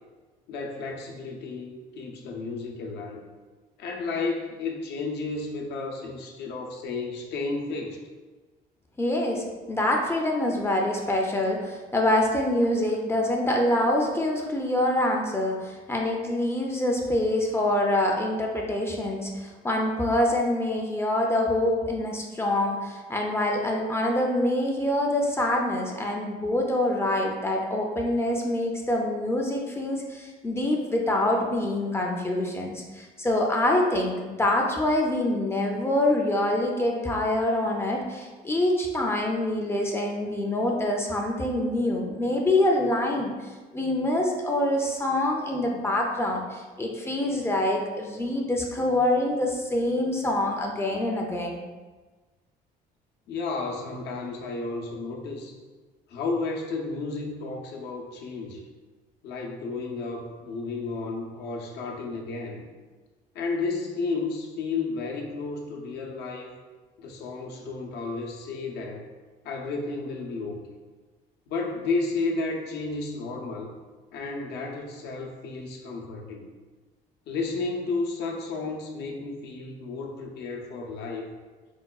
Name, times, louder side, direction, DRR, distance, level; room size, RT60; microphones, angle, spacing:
voice 1, 0.5-3.2 3.8-8.0 53.3-55.6 56.1-58.6 59.2-62.6 63.3-66.6 67.0-69.1 69.4-70.6 71.5-73.7 74.1-76.5 77.3-81.3, left 3 dB, 80° left, 0 dB, 0.6 m, -32 dB
voice 2, 9.0-43.3 43.7-51.6, left 1 dB, 15° left, 0 dB, 0.3 m, -25 dB
4.6 x 2.2 x 2.3 m, 1.3 s
cardioid pair, 110°, 17 cm